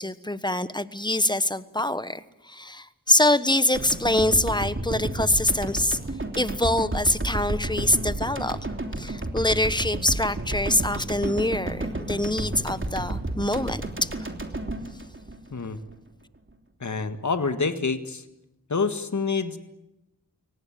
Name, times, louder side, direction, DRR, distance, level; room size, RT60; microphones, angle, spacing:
voice 1, 0.0-6.0 6.3-14.3, left 1 dB, 10° left, 14 dB, 1.3 m, -25 dB
sound 1, 3.7-16.0, right 2 dB, 35° right, 3.2 m, -31 dB
voice 2, 16.8-18.2 18.7-19.6, left 4 dB, 55° left, 9 dB, 1.8 m, -27 dB
24.0 x 18.5 x 9.2 m, 0.92 s
cardioid pair, 45°, 34 cm